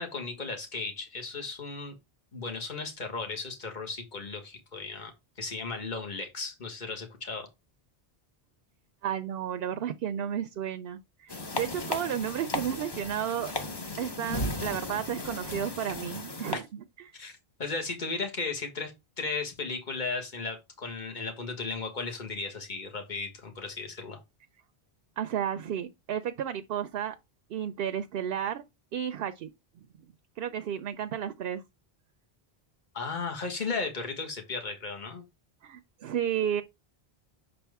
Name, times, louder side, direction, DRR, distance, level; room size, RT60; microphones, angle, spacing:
voice 1, 0.0-2.0 2.3-5.1 5.4-7.5 16.5-16.6 17.1-24.2 32.9-35.2, left 4 dB, 50° left, 1.6 m, -35 dB
voice 2, 9.0-13.5 14.0-17.1 25.2-27.2 27.5-28.6 28.9-29.5 30.4-31.6 35.6-36.6, right 9 dB, 70° right, 0.8 m, -32 dB
sound 1, 11.3-16.5, left 2 dB, 25° left, 0.9 m, -35 dB
6.5 x 4.3 x 3.5 m
omnidirectional pair, 1.0 m